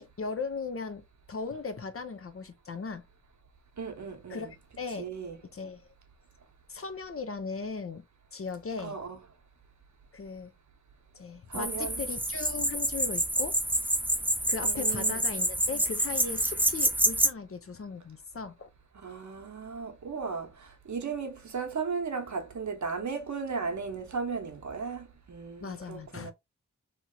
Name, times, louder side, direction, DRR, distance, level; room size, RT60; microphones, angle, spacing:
voice 1, 0.0-3.0 4.3-5.1 5.5-5.9 6.7-8.0 8.3-9.0 10.1-10.5 11.1-13.6 14.5-18.7 25.6-26.3, left 4 dB, 45° left, 0.6 m, -38 dB
voice 2, 3.8-4.5 5.0-5.4 8.8-9.2 11.5-12.0 14.6-15.2 19.0-26.3, right 5 dB, 60° right, 0.9 m, -36 dB
sound 1, 11.5-17.3, right 1 dB, 5° right, 0.6 m, -28 dB
2.9 x 2.8 x 2.2 m
cardioid pair, 40°, 33 cm